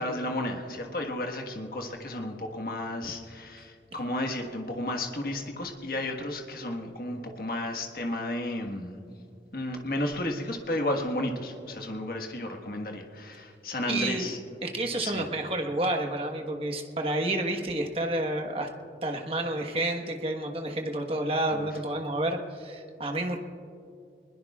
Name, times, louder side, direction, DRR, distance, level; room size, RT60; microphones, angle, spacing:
voice 1, 0.0-9.0 9.5-14.4 15.0-15.3 21.5-21.7, left 1 dB, 55° left, 2 dB, 1.5 m, -33 dB
voice 2, 13.9-14.3 14.6-18.7 19.0-23.4, right 1 dB, 30° right, 3 dB, 1.3 m, -30 dB
24.0 x 21.0 x 2.4 m, 2.5 s
head